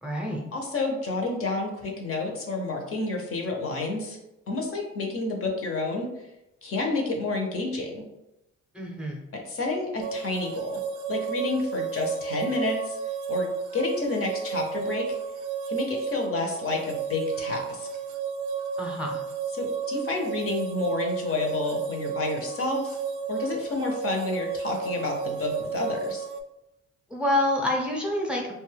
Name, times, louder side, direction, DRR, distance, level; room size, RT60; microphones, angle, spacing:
voice 1, 0.0-0.4 8.7-9.2 18.8-19.2 27.1-28.5, left 1 dB, 5° right, -1 dB, 0.6 m, -27 dB
voice 2, 0.5-4.2 4.5-6.1 6.6-8.0 9.3-10.8 11.1-13.0 13.3-15.2 15.7-17.9 19.5-23.0 23.3-26.3, left 3 dB, 50° left, 1 dB, 0.7 m, -29 dB
sound 1, 10.0-26.4, right 6 dB, 80° right, 0.4 m, -32 dB
2.6 x 2.2 x 3.2 m, 0.90 s
cardioid pair, 90°, 30 cm